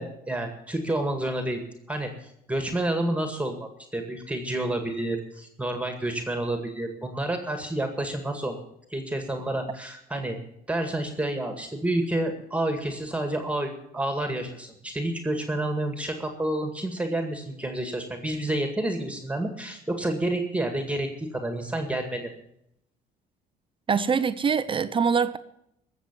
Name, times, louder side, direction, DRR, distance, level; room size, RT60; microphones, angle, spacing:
voice 1, 0.0-1.6 1.9-8.6 8.9-10.4 10.7-22.3, right 1 dB, 5° right, 2.1 m, -29 dB
voice 2, 23.9-25.4, right 6 dB, 30° right, 0.6 m, -24 dB
19.5 x 7.4 x 7.5 m
cardioid pair, 110°, 17 cm